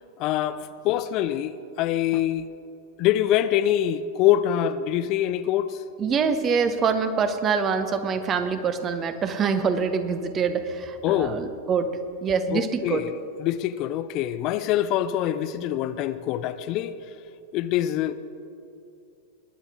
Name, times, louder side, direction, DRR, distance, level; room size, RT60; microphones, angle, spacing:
voice 1, 0.2-1.5 1.8-2.5 3.0-5.8 11.0-11.4 12.5-13.1 13.4-16.9 17.5-18.1, left 12 dB, 40° left, 13 dB, 0.4 m, -24 dB
voice 2, 6.0-11.9 12.2-13.0, right 5 dB, 25° right, 10 dB, 0.9 m, -25 dB
20.5 x 9.9 x 3.6 m, 2.7 s
figure-of-eight pair, 90°, 0 cm